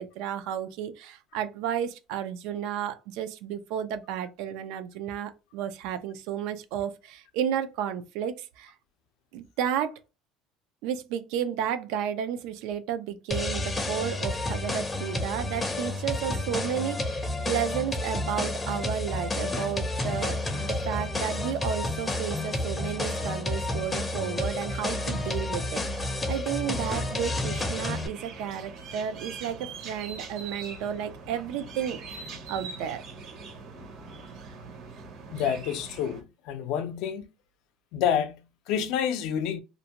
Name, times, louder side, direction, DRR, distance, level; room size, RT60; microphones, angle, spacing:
voice 1, 0.0-8.7 9.3-10.0 10.8-33.0, right 9 dB, 80° right, 0.4 m, -32 dB
sound 1, 13.3-28.1, left 2 dB, 15° left, 0.5 m, -30 dB
sound 2, 26.8-36.2, right 4 dB, 60° right, 0.9 m, -42 dB
voice 2, 35.3-37.3 37.9-39.6, left 8 dB, 70° left, 0.4 m, -28 dB
2.5 x 2.1 x 2.8 m
cardioid pair, 140°, 0 cm